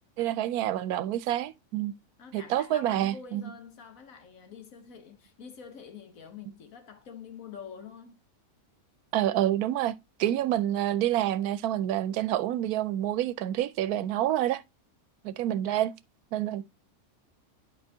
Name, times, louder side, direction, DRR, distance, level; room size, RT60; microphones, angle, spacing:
voice 1, 0.2-1.9 2.3-3.4 9.1-9.9 10.2-14.6 15.2-15.9 16.3-16.6, right 12 dB, 90° right, 1.1 m, -28 dB
voice 2, 2.2-8.2 15.6-15.9, left 6 dB, 70° left, 1.5 m, -46 dB
8.9 x 4.8 x 2.7 m
omnidirectional pair, 1.5 m